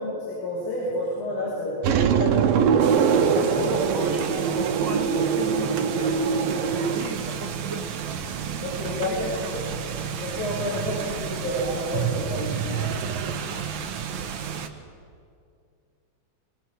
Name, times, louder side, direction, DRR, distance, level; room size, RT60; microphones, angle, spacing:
voice 1, 0.0-1.8 2.2-2.7 3.3-3.8 8.6-9.1 9.5-9.6 10.2-12.6, left 1 dB, 60° left, -6 dB, 7.9 m, -30 dB
sound 1, 1.8-7.1 8.0-9.2 11.9-13.5, right 6 dB, 90° right, 2.8 m, -24 dB
voice 2, 2.1-2.4 3.5-7.9 8.9-9.6 10.9-11.2 12.6-13.7, right 3 dB, 40° right, 2 dB, 2.2 m, -38 dB
sound 2, 2.8-14.7, right 7 dB, 65° right, 2.6 m, -32 dB
25.0 x 22.5 x 7.8 m, 2.4 s
omnidirectional pair, 3.9 m